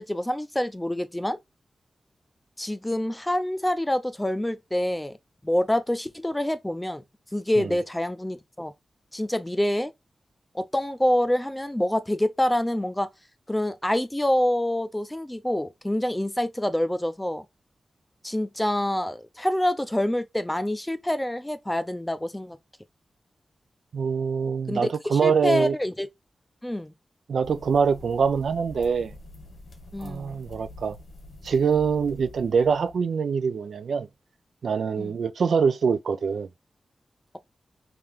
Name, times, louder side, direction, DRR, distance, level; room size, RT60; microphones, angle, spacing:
voice 1, 0.0-1.4 2.6-5.2 5.4-7.0 7.3-8.7 9.1-9.9 10.5-13.1 13.5-17.5 18.2-22.6 24.7-26.1 26.6-26.9 29.9-30.4 35.0-35.2, left 1 dB, 10° left, 0.5 m, -26 dB
voice 2, 23.9-25.7 27.3-29.1 30.0-31.0 31.4-34.1 34.6-36.5, right 6 dB, 85° right, 0.4 m, -24 dB
sound 1, 27.4-33.0, left 1 dB, 60° left, 1.7 m, -46 dB
3.3 x 2.9 x 3.6 m
wide cardioid pair, 110°, 0 cm